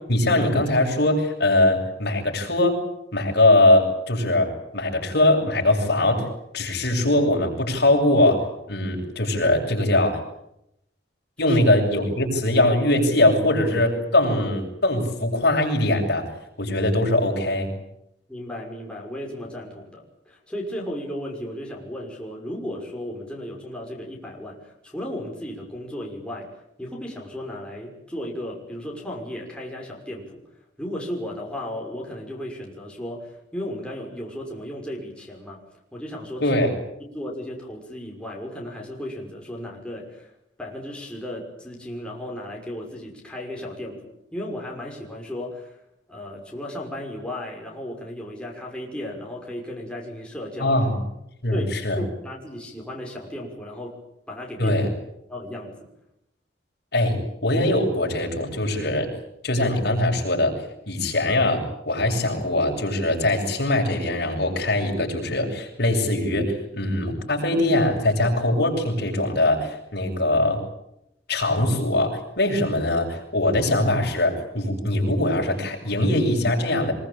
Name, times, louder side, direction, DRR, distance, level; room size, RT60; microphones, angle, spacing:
voice 1, 0.1-2.8 3.1-6.2 6.5-10.2 11.4-16.2 16.6-17.7 36.4-36.7 50.6-50.9 51.4-52.0 54.6-54.9 56.9-59.1 59.4-60.5 60.9-70.6 71.3-76.9, left 1 dB, 65° left, 1 dB, 7.7 m, -21 dB
voice 2, 18.3-26.5 26.8-30.4 30.8-35.6 35.9-36.5 37.0-40.3 40.6-45.8 46.1-50.8 51.5-51.7 52.0-54.0 54.3-54.8 55.3-55.7, left 1 dB, 5° left, -2 dB, 5.9 m, -35 dB
25.0 x 23.5 x 8.9 m, 0.80 s
head